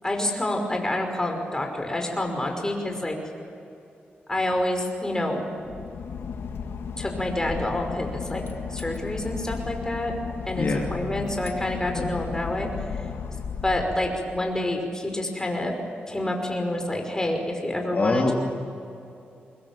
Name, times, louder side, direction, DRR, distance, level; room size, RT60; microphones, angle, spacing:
voice 1, 0.0-3.2 4.3-5.4 7.0-8.4 8.7-10.1 10.5-12.7 13.6-15.7 16.1-18.3, left 1 dB, 15° left, 3 dB, 5.5 m, -28 dB
Boat Water vehicle / Engine, 5.6-14.6, left 6 dB, 75° left, 1.5 m, -34 dB
voice 2, 17.9-18.3, left 3 dB, 45° left, -1 dB, 2.8 m, -23 dB
25.0 x 21.0 x 7.5 m, 2.6 s
cardioid pair, 70°, 4 cm